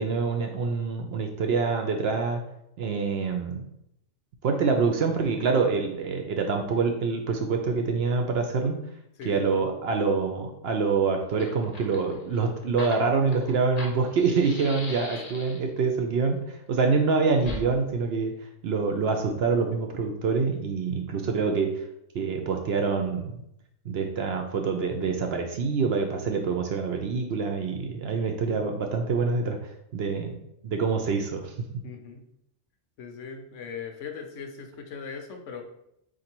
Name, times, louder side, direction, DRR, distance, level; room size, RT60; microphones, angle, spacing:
voice 1, 0.0-2.4 2.8-3.7 4.4-8.8 9.2-18.3 18.6-21.7 22.1-23.4 23.9-29.6 29.9-30.3 30.6-31.5, right 4 dB, 65° right, 4 dB, 0.7 m, -26 dB
voice 2, 9.2-9.7 31.8-32.2 33.0-35.6, left 6 dB, 75° left, 4 dB, 1.0 m, -39 dB
Fire, 10.9-11.0 11.2-15.8 17.4-17.6, left 2 dB, 40° left, 0.6 m, -40 dB
3.9 x 2.6 x 4.4 m, 0.79 s
omnidirectional pair, 1.3 m